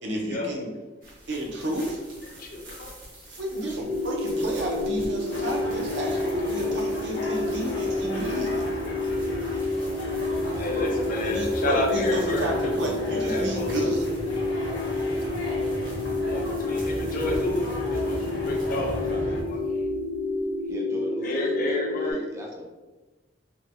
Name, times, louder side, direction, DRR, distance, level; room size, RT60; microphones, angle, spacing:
voice 1, 0.0-0.8 1.3-2.0 3.3-8.7 11.2-14.1, right 1 dB, 65° right, -1 dB, 0.6 m, -31 dB
sound 1, 1.0-20.8, right 1 dB, 50° right, 1.0 m, -47 dB
voice 2, 2.4-2.9 10.6-12.8 13.2-14.1 16.2-18.2 18.4-19.6 21.2-22.2, left 2 dB, 50° left, 0 dB, 0.5 m, -30 dB
sound 2, 3.8-22.1, left 2 dB, 35° right, 0.7 m, -29 dB
sound 3, 5.3-19.4, left 1 dB, 85° left, 0.7 m, -35 dB
voice 3, 10.4-11.4 20.7-22.7, right 1 dB, 15° right, -1 dB, 0.3 m, -39 dB
2.8 x 2.2 x 2.6 m, 1.2 s
head